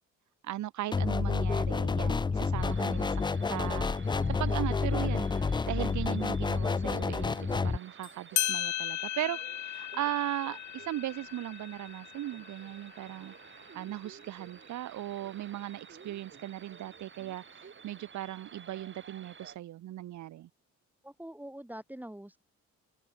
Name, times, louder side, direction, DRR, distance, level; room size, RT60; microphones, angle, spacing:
voice 1, 0.4-3.2 3.5-5.3 5.7-20.5, right 14 dB, 70° right, 1.1 m, -38 dB
sound 1, 0.9-7.8, left 4 dB, 15° left, 0.4 m, -29 dB
sound 2, 2.6-19.6, right 6 dB, 40° right, 4.0 m, -52 dB
sound 3, 8.0-8.1 8.4-13.4, left 14 dB, 70° left, 1.1 m, -36 dB
voice 2, 21.0-22.4, right 1 dB, 5° right, 3.6 m, -44 dB
open air
cardioid pair, 90°, 30 cm